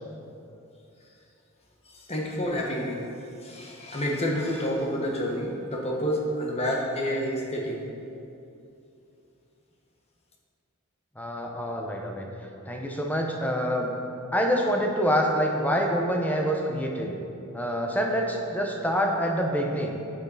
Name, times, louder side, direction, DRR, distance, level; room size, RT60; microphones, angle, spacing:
voice 1, 2.1-3.0 3.4-7.8, equal, 30° left, -1 dB, 1.2 m, -29 dB
voice 2, 11.2-12.3 12.7-13.9 14.3-17.2 17.5-20.0, equal, 10° left, 1 dB, 0.8 m, -26 dB
8.6 x 8.5 x 4.1 m, 2.7 s
head